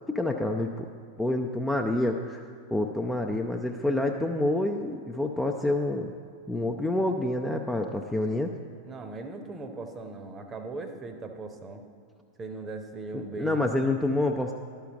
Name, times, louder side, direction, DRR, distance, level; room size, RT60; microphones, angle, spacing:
voice 1, 0.1-0.9 1.2-2.4 2.7-6.1 6.5-8.5 13.1-14.5, left 1 dB, 5° left, 2 dB, 0.4 m, -27 dB
voice 2, 8.8-11.8 12.4-13.7, right 3 dB, 20° right, 7 dB, 0.8 m, -39 dB
12.0 x 5.7 x 5.1 m, 2.3 s
figure-of-eight pair, 90°, 0 cm